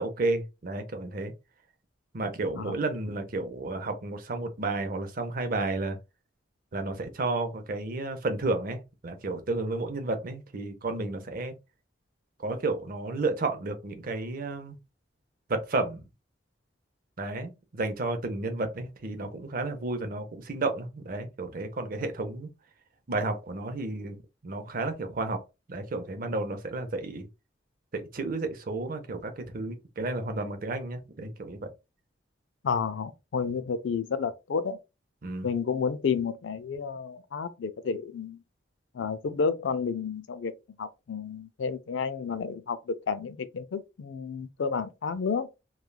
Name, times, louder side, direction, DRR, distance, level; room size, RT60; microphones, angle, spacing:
voice 1, 0.0-1.3 2.1-6.0 6.7-11.5 12.4-14.8 15.5-16.0 17.2-22.5 23.1-25.4 25.7-27.3 27.9-31.7 35.2-35.5, right 2 dB, 50° right, 0.6 m, -32 dB
voice 2, 32.6-34.8 35.4-38.4 38.9-40.5 40.8-45.5, left 5 dB, 80° left, 0.4 m, -31 dB
3.1 x 2.3 x 2.2 m
head